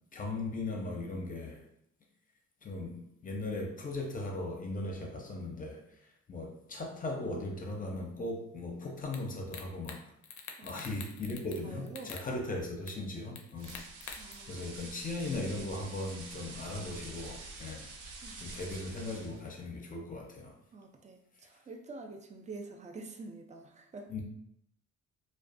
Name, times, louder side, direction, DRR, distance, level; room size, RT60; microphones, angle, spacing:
voice 1, 0.1-1.6 2.6-10.0 10.6-17.9 18.4-20.6 24.1-24.2, left 2 dB, 30° left, 1 dB, 0.6 m, -38 dB
sound 1, 9.1-9.2 9.5-10.0 10.2-11.6 11.9-12.3 12.9-13.0 13.4-14.3, left 7 dB, 75° left, 0.5 m, -45 dB
voice 2, 11.6-12.2 14.2-14.6 18.2-18.4 20.7-24.1, right 3 dB, 25° right, 3 dB, 0.4 m, -47 dB
sound 2, 13.6-19.5, right 3 dB, 85° right, 0.6 m, -47 dB
2.5 x 2.2 x 2.5 m, 0.74 s
cardioid pair, 90°, 30 cm